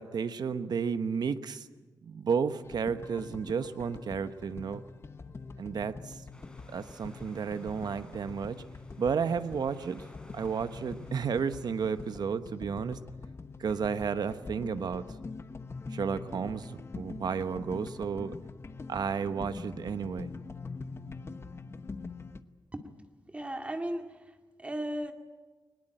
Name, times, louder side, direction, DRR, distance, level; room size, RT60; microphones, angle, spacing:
voice 1, 0.0-1.7 2.0-4.8 5.6-6.2 6.7-8.6 9.0-10.0 10.3-13.0 13.6-15.0 15.9-18.4 18.9-20.3, right 6 dB, 65° right, 11 dB, 1.0 m, -32 dB
sound 1, 2.6-22.4, left 4 dB, 35° left, 1.0 m, -44 dB
sound 2, 6.3-12.2, left 1 dB, 10° left, 4.1 m, -57 dB
voice 2, 23.3-25.1, right 1 dB, 15° right, 5 dB, 2.0 m, -36 dB
22.5 x 20.0 x 8.9 m, 1.3 s
wide cardioid pair, 130°, 7 cm